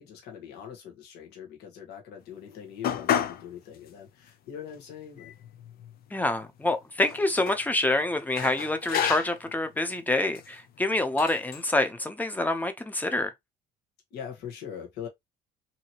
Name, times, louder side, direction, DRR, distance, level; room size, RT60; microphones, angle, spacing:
voice 1, 0.0-5.3 14.1-15.1, left 8 dB, 75° left, 1.1 m, -42 dB
sound 1, 2.8-3.5 3.8-3.9 4.7-4.8 5.2-6.1 7.0-7.6 8.4-9.5 10.3-10.5 11.2-11.6, left 9 dB, 60° left, 0.5 m, -31 dB
voice 2, 6.1-13.3, left 2 dB, 10° left, 0.7 m, -27 dB
2.8 x 2.8 x 2.8 m
cardioid pair, 110°, 17 cm